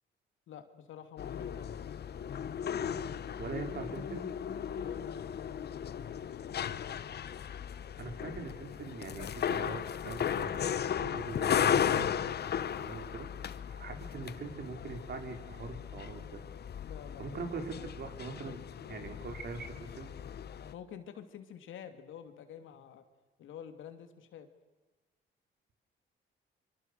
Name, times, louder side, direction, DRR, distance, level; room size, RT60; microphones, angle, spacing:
voice 1, 0.5-1.8 4.8-7.0 16.8-17.4 20.7-23.0 23.4-24.5, left 9 dB, 80° left, 8 dB, 2.6 m, -49 dB
sound 1, 1.2-20.7, left 8 dB, 55° left, 1.1 m, -36 dB
voice 2, 3.4-4.3 8.0-12.3 12.7-13.3 13.7-16.4 17.2-18.6 18.9-20.1, right 4 dB, 55° right, 5 dB, 4.5 m, -42 dB
25.0 x 25.0 x 6.8 m, 1.2 s
cardioid pair, 90°, 20 cm